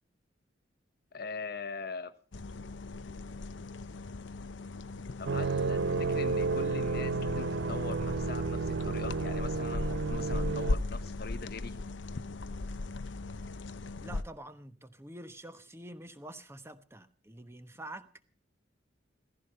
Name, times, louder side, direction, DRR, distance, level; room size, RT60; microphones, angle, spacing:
voice 1, 1.1-2.1 5.2-11.8, left 4 dB, 55° left, 1.0 m, -42 dB
sound 1, 2.3-14.2, left 2 dB, 85° left, 0.8 m, -38 dB
sound 2, 5.3-10.8, right 4 dB, 75° right, 0.7 m, -31 dB
voice 2, 14.0-18.1, right 1 dB, 15° right, 1.1 m, -47 dB
16.0 x 15.0 x 5.5 m
head